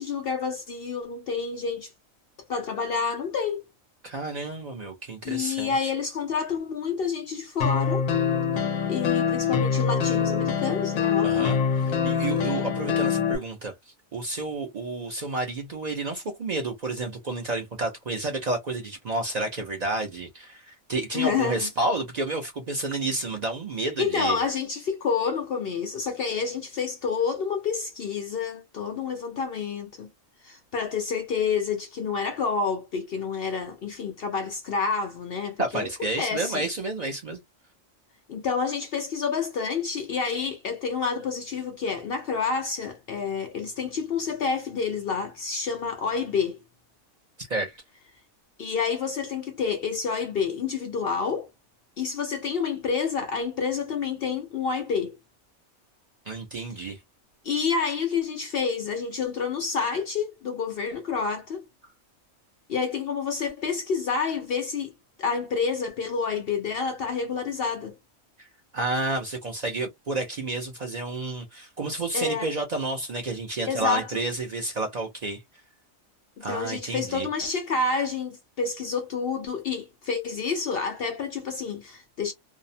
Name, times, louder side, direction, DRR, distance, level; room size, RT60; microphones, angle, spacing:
voice 1, 0.0-1.9 2.5-3.6 5.2-8.1 8.9-11.5 21.1-21.7 24.0-30.1 30.4-35.9 36.2-36.7 38.3-46.6 48.6-51.5 52.0-55.2 57.4-61.7 62.7-64.9 65.2-67.9 72.1-72.5 73.6-74.2 76.4-82.3, left 5 dB, 65° left, 0.6 m, -28 dB
voice 2, 4.0-5.9 11.2-24.4 35.6-37.4 47.4-47.8 56.3-57.0 68.4-68.5 68.7-75.4 76.4-77.3, right 2 dB, 75° right, 0.3 m, -30 dB
sound 1, 7.6-13.4, left 7 dB, 80° left, 1.1 m, -24 dB
2.6 x 2.0 x 2.6 m
omnidirectional pair, 1.4 m